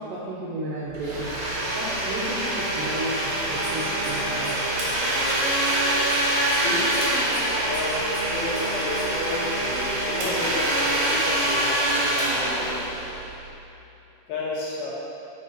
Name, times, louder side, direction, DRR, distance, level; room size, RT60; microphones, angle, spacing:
voice 1, 0.0-1.4 1.7-4.6, right 1 dB, 85° right, -6 dB, 1.9 m, -33 dB
Domestic sounds home sounds, 0.9-13.5, right 1 dB, 70° right, 1.6 m, -25 dB
sound 1, 3.6-9.1, left 1 dB, 55° left, 1.5 m, -40 dB
voice 2, 6.6-7.0 7.7-12.9 14.3-14.9, left 2 dB, 75° left, -6 dB, 2.8 m, -32 dB
8.5 x 4.4 x 2.8 m, 2.9 s
omnidirectional pair, 4.6 m